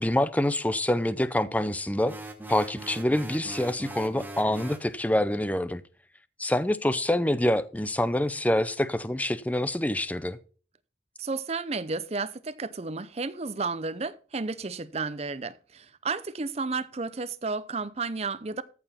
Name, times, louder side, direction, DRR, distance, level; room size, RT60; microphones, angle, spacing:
voice 1, 0.0-2.1 2.5-5.8 6.4-10.4, left 1 dB, 10° left, 0.5 m, -26 dB
sound 1, 2.0-4.9, right 1 dB, 10° right, 1.1 m, -41 dB
voice 2, 11.2-18.6, right 4 dB, 35° right, 0.6 m, -32 dB
14.0 x 4.8 x 5.7 m
head